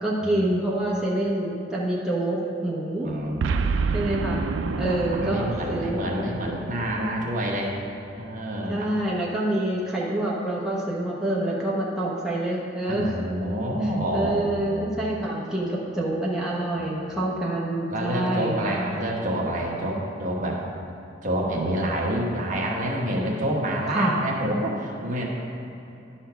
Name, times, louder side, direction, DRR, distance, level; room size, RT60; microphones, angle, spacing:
voice 1, 0.0-3.1 3.9-4.4 4.8-6.0 8.7-13.2 14.1-18.7 23.9-24.2, right 1 dB, 5° right, -6 dB, 0.9 m, -26 dB
voice 2, 3.0-3.4 4.9-7.7 8.2-8.9 12.9-14.7 16.8-17.1 17.9-20.6 21.2-25.2, right 1 dB, 45° right, -2 dB, 1.2 m, -28 dB
Boom, 3.4-7.8, right 4 dB, 85° right, 0.4 m, -29 dB
10.5 x 4.3 x 5.8 m, 2.9 s
head